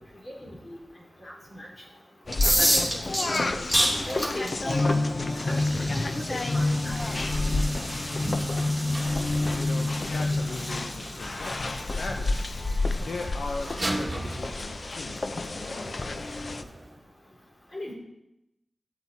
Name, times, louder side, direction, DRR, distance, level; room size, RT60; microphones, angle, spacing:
voice 1, 0.4-0.8 1.2-1.7 2.4-2.9 3.3-4.9 5.5-7.0 8.2-8.4 17.7-17.9, equal, 35° left, -3 dB, 4.1 m, -36 dB
sound 1, 2.3-16.6, left 2 dB, 55° left, 0.6 m, -29 dB
sound 2, 2.3-14.0, equal, 5° left, 2.9 m, -31 dB
sound 3, 6.3-17.0, right 1 dB, 30° right, 1.9 m, -40 dB
voice 2, 9.6-11.6 12.0-12.4 13.0-16.2, left 3 dB, 80° left, 3 dB, 0.8 m, -38 dB
14.5 x 8.2 x 2.8 m, 0.89 s
wide cardioid pair, 65°, 0 cm